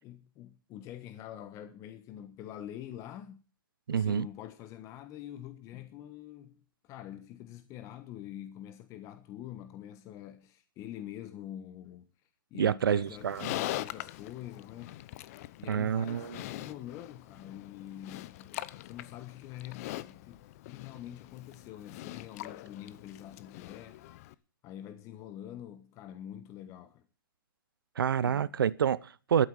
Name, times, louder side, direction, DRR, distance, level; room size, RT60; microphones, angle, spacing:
voice 1, 0.0-3.4 3.9-12.1 12.5-15.0 15.6-24.0 24.6-27.0 28.2-28.5, left 11 dB, 30° left, 1.2 m, -45 dB
voice 2, 3.9-4.3 12.6-13.5 15.7-16.4 28.0-29.5, right 8 dB, 80° right, 0.7 m, -28 dB
Livestock farm animals working animals, 13.1-24.3, left 16 dB, 45° left, 0.8 m, -42 dB
12.5 x 8.5 x 8.4 m
hypercardioid pair, 135°, 11 cm